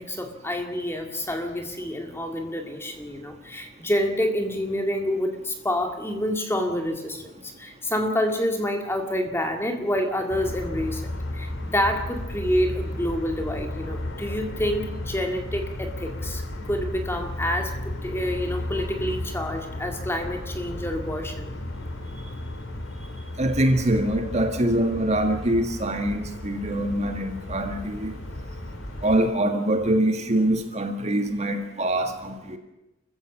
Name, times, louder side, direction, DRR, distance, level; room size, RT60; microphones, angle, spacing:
voice 1, 0.0-16.4 16.7-21.5, left 1 dB, 10° left, 4 dB, 2.3 m, -28 dB
sound 1, 10.3-29.3, left 1 dB, 60° left, 2.2 m, -34 dB
voice 2, 23.4-28.1 29.0-32.6, right 1 dB, 30° right, 6 dB, 1.7 m, -24 dB
27.5 x 15.0 x 7.4 m, 0.95 s
head